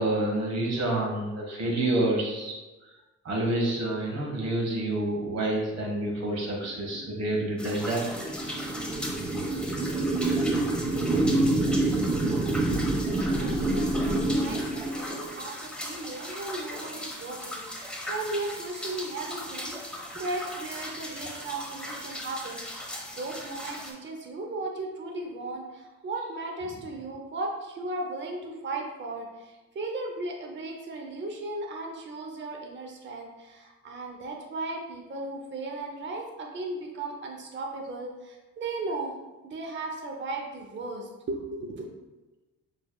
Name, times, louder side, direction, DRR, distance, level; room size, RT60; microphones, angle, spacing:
voice 1, 0.0-2.9 3.2-8.0 21.1-21.3, right 1 dB, 60° right, -1 dB, 1.5 m, -28 dB
sound 1, 6.6-15.4, right 2 dB, 15° right, 0.4 m, -27 dB
sound 2, 7.6-23.9, left 1 dB, 5° left, 1.0 m, -38 dB
voice 2, 13.1-39.2 39.4-41.9, right 2 dB, 40° right, 1 dB, 0.8 m, -36 dB
6.8 x 3.4 x 2.3 m, 1.1 s
cardioid pair, 90°, 30 cm